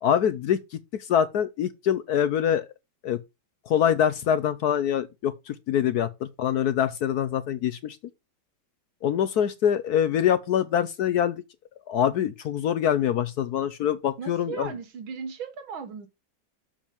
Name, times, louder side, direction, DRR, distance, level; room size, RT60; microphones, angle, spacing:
voice 1, 0.0-2.7 3.0-3.2 3.7-6.1 6.4-8.0 9.0-11.4 11.9-14.7, left 9 dB, 65° left, 1.0 m, -24 dB
voice 2, 14.2-16.1, right 6 dB, 85° right, 2.2 m, -37 dB
7.2 x 5.2 x 5.1 m
omnidirectional pair, 2.1 m